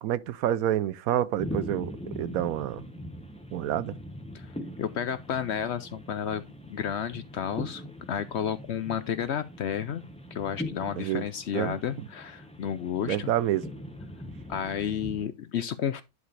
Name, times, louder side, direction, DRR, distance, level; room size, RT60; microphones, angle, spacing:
voice 1, 0.0-2.8 3.5-4.0 11.0-11.2 11.5-11.8 13.0-13.7, right 12 dB, 80° right, 1.0 m, -28 dB
sound 1, 1.4-15.3, left 1 dB, 5° left, 1.1 m, -41 dB
voice 2, 4.8-7.8 8.1-10.0 10.3-13.3 14.5-16.0, left 8 dB, 65° left, 0.7 m, -31 dB
11.0 x 4.8 x 3.2 m
omnidirectional pair, 1.5 m